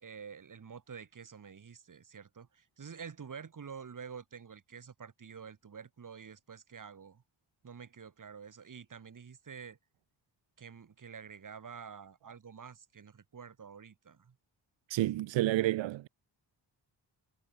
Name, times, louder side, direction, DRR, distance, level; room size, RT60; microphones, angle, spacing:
voice 1, 0.0-7.2 7.6-9.8 10.6-14.4, right 6 dB, 45° right, 2.5 m, -48 dB
voice 2, 14.9-16.1, right 15 dB, 85° right, 0.6 m, -29 dB
wide cardioid pair, 120°, 44 cm